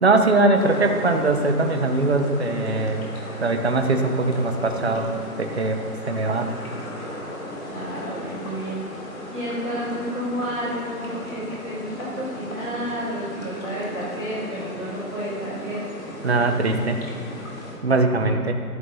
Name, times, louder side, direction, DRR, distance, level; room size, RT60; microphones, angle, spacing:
voice 1, 0.0-3.1 3.4-5.1 5.4-6.5 16.2-17.0 17.8-18.5, right 2 dB, 45° right, 5 dB, 0.8 m, -21 dB
sound 1, 0.5-17.8, left 1 dB, 60° left, 2.9 m, -36 dB
voice 2, 7.7-8.8 9.3-15.9 18.2-18.4, equal, ahead, -31 dB, 1.1 m, -31 dB
14.0 x 11.0 x 2.8 m, 2.5 s
hypercardioid pair, 175°, 47 cm